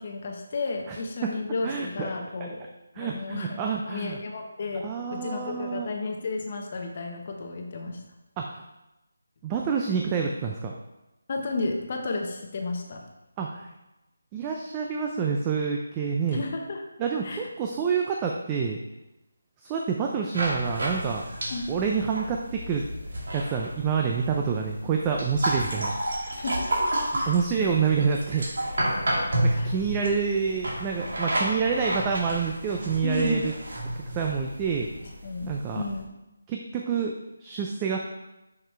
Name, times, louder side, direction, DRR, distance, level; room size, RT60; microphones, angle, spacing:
voice 1, 0.0-2.6 3.0-3.6 3.9-8.0 11.3-13.1 16.3-16.8 17.2-17.5 21.5-21.7 26.4-26.7 27.1-27.3 29.2-29.7 33.0-33.5 35.0-36.1, left 3 dB, 40° left, 2 dB, 0.8 m, -32 dB
voice 2, 1.6-2.1 2.4-2.5 3.0-4.2 4.8-5.9 8.4-8.6 9.4-10.7 13.4-13.7 14.3-16.4 17.0-18.8 19.6-21.2 21.7-22.8 23.3-26.0 27.3-28.5 29.1-33.5 34.0-34.9 35.5-35.8 36.5-37.1 37.4-38.0, right 6 dB, 15° right, 1 dB, 0.4 m, -27 dB
sound 1, 20.3-36.0, right 1 dB, 65° right, 2.0 m, -31 dB
5.8 x 5.2 x 4.5 m, 0.96 s
figure-of-eight pair, 165°, 0 cm